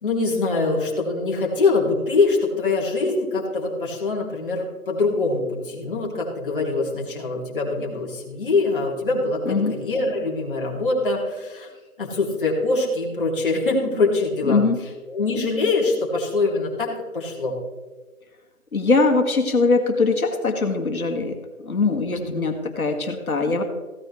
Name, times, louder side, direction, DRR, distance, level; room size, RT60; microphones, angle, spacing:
voice 1, 0.0-11.7 12.0-14.6 15.1-16.9 17.1-17.5 22.1-22.5, left 3 dB, 35° left, -3 dB, 2.9 m, -23 dB
voice 2, 14.5-14.8 18.7-21.3 21.6-23.6, left 3 dB, 70° left, 5 dB, 2.2 m, -21 dB
16.0 x 9.3 x 3.3 m, 1.3 s
figure-of-eight pair, 170°, 43 cm